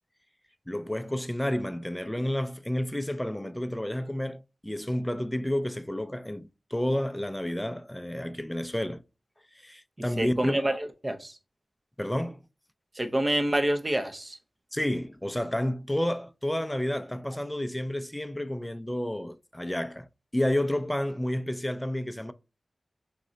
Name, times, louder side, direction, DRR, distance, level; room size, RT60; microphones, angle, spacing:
voice 1, 0.7-9.0 9.5-10.6 12.0-12.4 14.7-20.1 20.3-22.3, left 1 dB, 10° left, 0.4 m, -30 dB
voice 2, 10.2-11.4 12.9-14.4, right 1 dB, 30° right, 0.7 m, -27 dB
3.7 x 3.1 x 3.9 m
cardioid pair, 40°, 0 cm